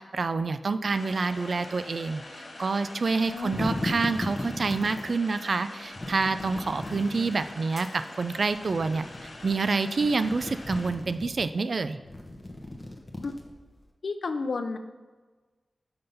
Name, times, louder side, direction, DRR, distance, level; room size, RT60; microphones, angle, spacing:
voice 1, 0.0-9.1 9.4-12.0, right 4 dB, 65° right, 12 dB, 0.3 m, -27 dB
sound 1, 0.9-10.9, left 2 dB, 55° left, 1.2 m, -45 dB
sound 2, 3.2-5.2 6.0-7.6 8.5-9.5 9.9-11.4 12.0-13.8, left 1 dB, 25° left, 1.1 m, -36 dB
voice 2, 3.3-3.6 13.2-13.3 14.0-14.8, left 4 dB, 75° left, 8 dB, 0.5 m, -31 dB
sound 3, 7.7-8.8, equal, ahead, 0.8 m, -51 dB
5.7 x 5.5 x 5.3 m, 1.3 s
wide cardioid pair, 80°, 0 cm